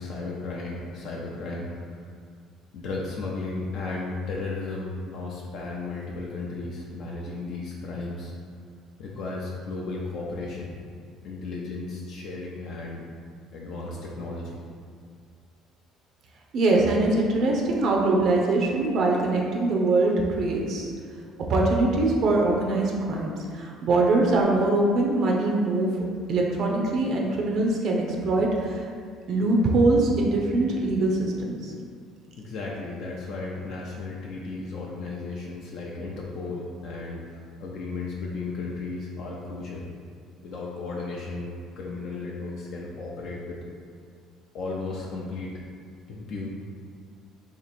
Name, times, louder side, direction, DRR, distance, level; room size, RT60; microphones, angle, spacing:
voice 1, 0.0-1.9 2.7-8.3 9.0-10.7 11.2-13.0 13.5-14.6 32.4-39.8 40.4-43.6 44.5-45.6 46.1-46.5, left 3 dB, 60° left, -3 dB, 0.5 m, -34 dB
voice 2, 16.5-20.9 21.5-25.9 26.3-28.8 29.3-31.6, right 2 dB, 50° right, -1 dB, 0.6 m, -23 dB
2.9 x 2.9 x 4.2 m, 2.2 s
cardioid pair, 135°, 0 cm